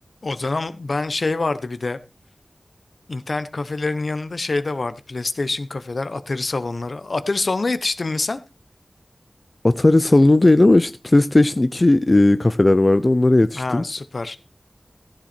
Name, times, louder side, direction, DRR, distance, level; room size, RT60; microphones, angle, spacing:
voice 1, 0.2-2.0 3.1-8.4 13.5-14.4, left 3 dB, 70° left, 0.9 m, -26 dB
voice 2, 9.6-13.8, left 2 dB, 40° left, 0.5 m, -16 dB
14.5 x 7.4 x 4.4 m
wide cardioid pair, 65°, 0 cm